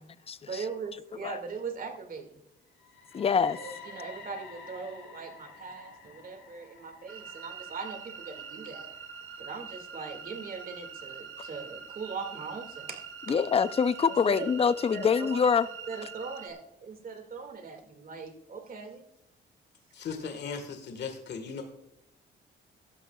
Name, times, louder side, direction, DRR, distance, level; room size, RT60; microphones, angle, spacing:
voice 1, 0.5-2.4 3.6-8.9 9.4-13.0 14.3-14.5 14.9-15.4 15.9-19.1, right 5 dB, 45° right, 2.2 m, -40 dB
sound 1, 2.7-10.6, left 4 dB, 80° left, 4.0 m, -50 dB
voice 2, 3.1-3.6 13.3-15.7, left 6 dB, 30° left, 0.5 m, -25 dB
sound 2, 7.1-16.5, right 6 dB, 75° right, 1.5 m, -44 dB
voice 3, 19.9-21.6, left 5 dB, 60° left, 1.6 m, -37 dB
16.0 x 12.0 x 2.4 m
cardioid pair, 90°, 20 cm